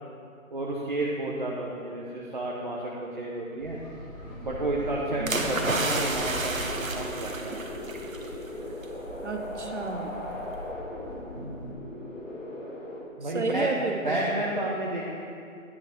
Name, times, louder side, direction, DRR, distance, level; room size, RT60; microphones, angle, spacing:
voice 1, 0.5-3.8 4.4-7.6 11.3-11.8 13.2-13.7 14.0-15.0, right 1 dB, 35° right, -4 dB, 0.8 m, -31 dB
sound 1, 3.6-11.7, equal, 30° left, 1.9 m, -42 dB
sound 2, 4.2-13.0, left 1 dB, 60° left, 2.0 m, -39 dB
sound 3, 5.3-8.3 8.6-8.8, right 2 dB, 70° right, 1.2 m, -30 dB
voice 2, 9.2-10.1 13.2-14.2, right 3 dB, 55° right, 5 dB, 0.9 m, -31 dB
10.5 x 6.1 x 4.4 m, 2.5 s
figure-of-eight pair, 155°, 42 cm